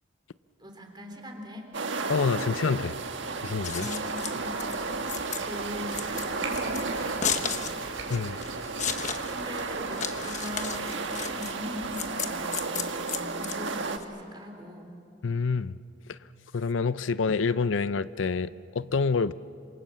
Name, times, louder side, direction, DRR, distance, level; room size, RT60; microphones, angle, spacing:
voice 1, 0.6-1.7 3.8-5.1 5.4-7.7 9.3-14.9, equal, 25° right, 3 dB, 3.5 m, -41 dB
sound 1, 1.7-14.0, right 3 dB, 70° right, 1.4 m, -33 dB
Hands, 1.8-13.2, right 3 dB, 90° right, 4.5 m, -45 dB
voice 2, 2.1-2.9 3.4-3.9 8.1-8.4 15.2-15.7 16.1-16.2 16.5-19.3, left 4 dB, 80° left, 15 dB, 0.5 m, -27 dB
Scissors, 3.4-14.0, left 7 dB, 40° left, 1.3 m, -34 dB
28.0 x 26.5 x 7.7 m, 2.5 s
head